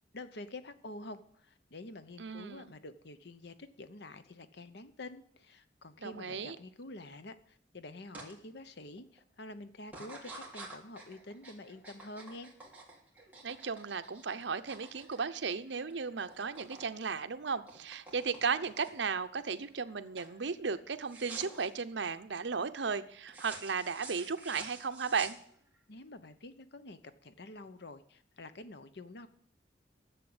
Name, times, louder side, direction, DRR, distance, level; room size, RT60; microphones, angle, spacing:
voice 1, 0.1-12.5 25.9-29.3, left 2 dB, 65° left, 12 dB, 0.9 m, -48 dB
voice 2, 2.2-2.7 6.0-6.6 13.4-25.4, right 5 dB, 70° right, 11 dB, 0.8 m, -35 dB
sound 1, 8.1-8.3 8.8-9.2 9.8-16.9 17.2-19.1 19.6-19.9 20.2-20.4 21.1-21.7 23.3-25.8, right 3 dB, 10° right, 2.9 m, -49 dB
11.0 x 7.3 x 8.0 m, 0.66 s
head